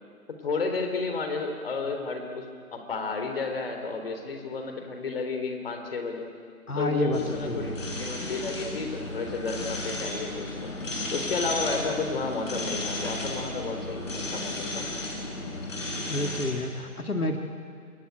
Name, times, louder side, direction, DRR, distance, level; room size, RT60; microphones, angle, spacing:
voice 1, 0.3-6.3 6.8-10.7 11.1-14.9, left 4 dB, 40° left, 5 dB, 3.7 m, -32 dB
voice 2, 6.7-7.8 15.7-15.8 16.1-17.4, left 1 dB, 85° left, 4 dB, 2.3 m, -29 dB
sound 1, 7.1-16.5, left 2 dB, 60° left, 7.2 m, -34 dB
27.0 x 21.0 x 9.2 m, 2.3 s
figure-of-eight pair, 160°, 43 cm